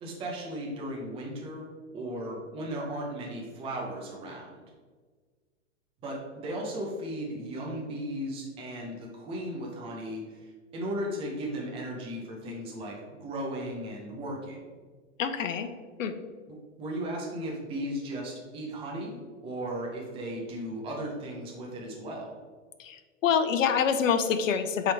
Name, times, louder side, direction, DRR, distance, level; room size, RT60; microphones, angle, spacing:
voice 1, 0.0-4.5 6.0-14.7 16.8-22.3, right 1 dB, 15° right, -2 dB, 0.9 m, -36 dB
voice 2, 15.2-15.7 16.0-16.1 22.8-24.9, left 7 dB, 85° left, 9 dB, 0.8 m, -26 dB
7.5 x 3.8 x 3.4 m, 1.5 s
hypercardioid pair, 155°, 38 cm